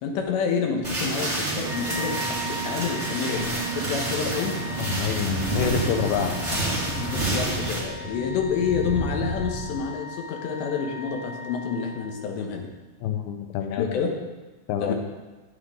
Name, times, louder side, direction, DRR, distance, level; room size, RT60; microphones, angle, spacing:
voice 1, 0.0-4.5 7.0-12.7 13.7-14.1 14.8-14.9, left 6 dB, 75° left, 2 dB, 3.2 m, -28 dB
sound 1, 0.8-7.8, right 2 dB, 10° right, 3.0 m, -29 dB
Wind instrument woodwind instrument, 1.6-12.4, left 1 dB, 75° right, 3.6 m, -39 dB
sound 2, 3.6-4.5 4.8-9.8, right 1 dB, 15° left, 2.5 m, -35 dB
voice 2, 4.8-6.6 13.0-14.0 14.7-14.9, left 8 dB, 90° left, 6 dB, 2.2 m, -27 dB
13.0 x 9.7 x 3.8 m, 1.2 s
omnidirectional pair, 5.7 m